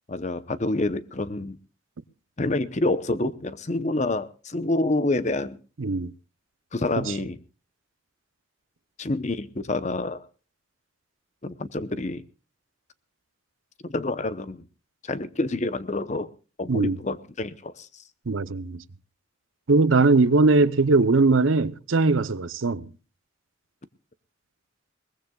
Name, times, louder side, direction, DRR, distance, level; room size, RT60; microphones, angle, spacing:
voice 1, 0.1-1.6 2.4-5.6 6.7-7.4 9.0-10.2 11.4-12.2 13.9-14.6 15.1-16.3 16.6-17.9, left 2 dB, 35° left, 0.8 m, -27 dB
voice 2, 5.8-6.1 7.0-7.1 16.7-17.0 18.3-18.8 19.7-22.8, right 3 dB, 80° right, 0.7 m, -20 dB
22.0 x 19.5 x 2.3 m
head